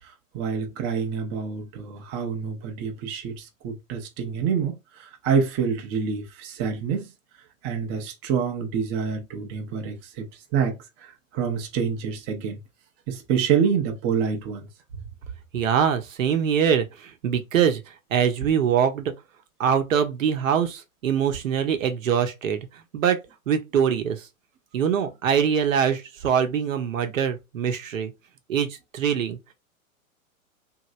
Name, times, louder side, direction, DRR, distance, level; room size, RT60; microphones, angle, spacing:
voice 1, 0.3-7.1 7.6-10.3 10.5-12.6 13.1-14.7, right 6 dB, 25° right, 0.6 m, -27 dB
voice 2, 15.5-19.1 19.6-23.2 23.5-24.3 24.7-28.1 28.5-29.5, right 8 dB, 65° right, 0.9 m, -23 dB
3.0 x 2.7 x 2.5 m
figure-of-eight pair, 110°, 42 cm